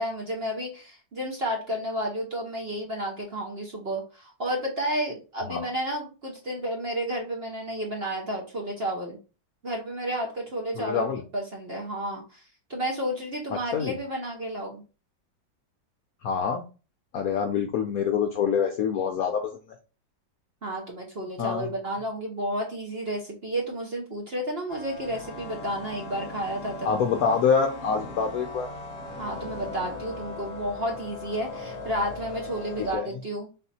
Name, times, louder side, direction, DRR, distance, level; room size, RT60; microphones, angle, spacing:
voice 1, 0.0-9.2 9.6-11.1 11.3-12.4 12.7-14.8 20.6-26.9 29.2-33.5, right 1 dB, 45° right, -1 dB, 0.9 m, -31 dB
voice 2, 10.8-11.2 13.5-14.0 16.2-16.7 17.1-19.6 21.4-21.7 26.8-28.7 32.8-33.1, left 6 dB, 70° left, 4 dB, 0.8 m, -26 dB
sound 1, 24.7-33.0, left 3 dB, 50° left, 0.9 m, -38 dB
4.0 x 2.6 x 4.1 m, 0.33 s
omnidirectional pair, 2.0 m